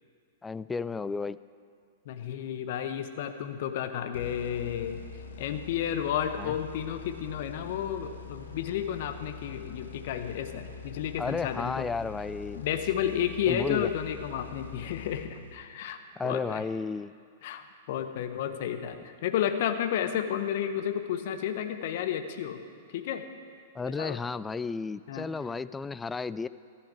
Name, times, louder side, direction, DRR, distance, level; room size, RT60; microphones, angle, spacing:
voice 1, 0.4-1.4 6.4-6.5 11.2-12.6 13.5-13.9 16.2-17.1 23.7-26.5, left 4 dB, 10° left, 16 dB, 0.3 m, -33 dB
voice 2, 2.0-5.0 5.4-11.9 12.5-16.6 17.4-22.6 22.9-23.2 23.9-24.2 25.1-25.3, left 9 dB, 55° left, 8 dB, 1.0 m, -32 dB
sound 1, 4.1-15.8, left 5 dB, 75° left, 1.3 m, -44 dB
14.5 x 13.0 x 4.8 m, 2.2 s
figure-of-eight pair, 105°, 0 cm